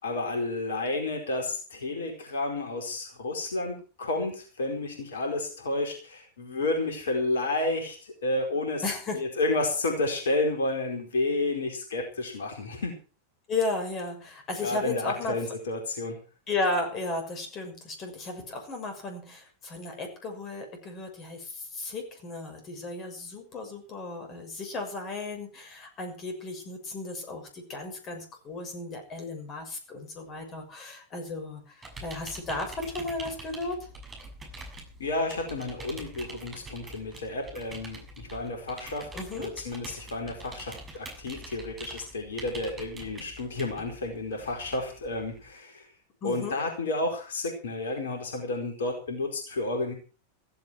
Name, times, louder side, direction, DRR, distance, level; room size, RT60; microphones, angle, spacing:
voice 1, 0.0-8.8 9.1-12.9 14.6-16.2 35.0-39.1 39.3-45.9 46.2-49.9, left 2 dB, 65° left, 3 dB, 4.7 m, -31 dB
voice 2, 8.8-9.2 13.5-15.4 16.5-33.9 39.1-39.5 46.2-46.6, left 3 dB, 30° left, 5 dB, 6.4 m, -34 dB
sound 1, 31.8-45.5, right 2 dB, 20° right, 7.1 m, -45 dB
15.5 x 15.5 x 4.8 m, 0.37 s
figure-of-eight pair, 90°, 0 cm